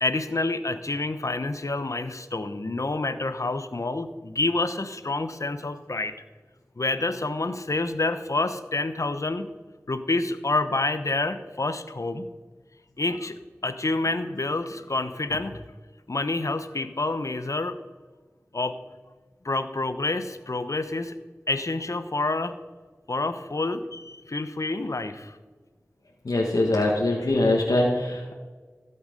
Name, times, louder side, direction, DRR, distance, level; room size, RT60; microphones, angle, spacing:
voice 1, 0.0-6.2 6.8-9.5 9.9-12.3 13.0-15.6 16.1-17.8 18.5-18.8 19.4-21.2 21.5-22.5 23.1-25.4 26.5-26.6, left 2 dB, 60° left, 10 dB, 1.0 m, -28 dB
voice 2, 26.2-28.3, left 2 dB, 85° left, -2 dB, 1.6 m, -23 dB
16.5 x 8.0 x 5.3 m, 1.4 s
wide cardioid pair, 40°, 6 cm